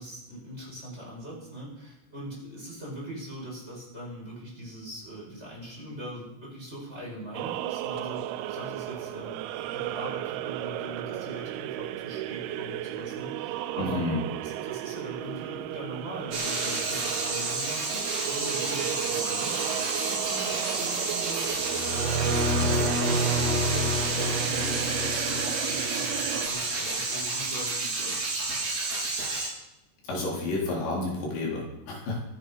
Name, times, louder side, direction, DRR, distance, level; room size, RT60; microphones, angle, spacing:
voice 1, 0.0-14.1 14.4-21.5 21.9-28.2, right 1 dB, 15° right, -4 dB, 6.4 m, -41 dB
sound 1, 7.3-26.5, right 14 dB, 80° right, 2.4 m, -34 dB
voice 2, 13.8-14.3 30.0-32.2, left 2 dB, 85° left, -3 dB, 6.3 m, -30 dB
sound 2, 16.3-29.5, right 3 dB, 40° right, 4.4 m, -30 dB
sound 3, 21.6-25.9, equal, 60° right, 1.7 m, -28 dB
23.0 x 10.5 x 5.5 m, 0.90 s
omnidirectional pair, 5.0 m